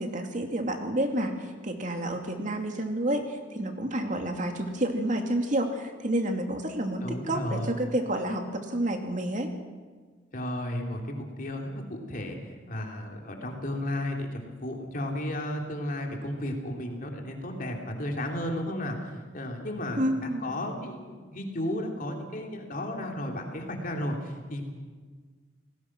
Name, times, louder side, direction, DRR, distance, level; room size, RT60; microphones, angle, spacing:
voice 1, 0.0-9.5 20.0-20.6, right 1 dB, 40° right, 4 dB, 2.6 m, -29 dB
voice 2, 7.0-7.7 10.3-12.4 12.7-24.7, left 1 dB, 45° left, 1 dB, 3.3 m, -33 dB
29.0 x 19.5 x 6.2 m, 1.5 s
head